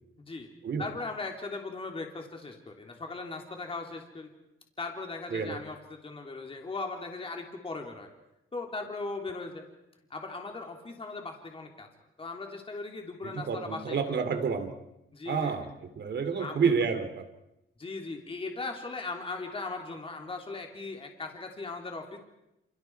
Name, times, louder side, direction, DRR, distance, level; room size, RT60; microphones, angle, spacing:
voice 1, 0.2-0.5 0.8-4.3 4.8-8.1 8.5-9.6 10.1-11.9 12.2-14.2 15.1-15.6 16.4-16.7 17.8-22.2, left 3 dB, 25° left, 3 dB, 3.1 m, -38 dB
voice 2, 5.3-5.6 13.2-14.7 15.3-15.7 16.0-17.2, right 6 dB, 55° right, 8 dB, 2.9 m, -29 dB
28.5 x 28.5 x 4.7 m, 0.90 s
cardioid pair, 125°, 21 cm